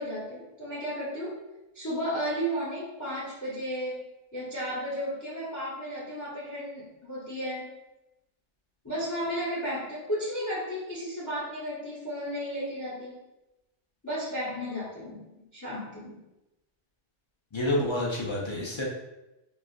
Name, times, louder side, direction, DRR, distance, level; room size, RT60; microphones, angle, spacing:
voice 1, 0.0-1.4 1.7-4.0 4.3-7.7 8.8-13.2 14.0-16.2, equal, 20° left, -8 dB, 0.7 m, -34 dB
voice 2, 17.5-18.8, left 1 dB, 45° left, -4 dB, 0.3 m, -28 dB
3.9 x 2.4 x 2.4 m, 0.96 s
omnidirectional pair, 1.2 m